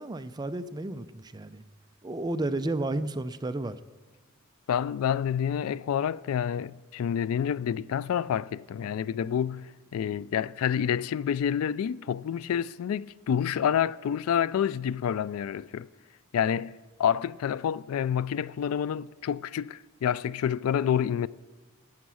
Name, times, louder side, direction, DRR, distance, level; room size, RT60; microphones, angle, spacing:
voice 1, 0.0-1.6 2.0-3.8, right 2 dB, 20° right, 0.4 m, -32 dB
voice 2, 4.7-15.9 16.3-16.7 17.0-21.3, left 8 dB, 80° left, 0.3 m, -28 dB
11.5 x 8.1 x 6.2 m
head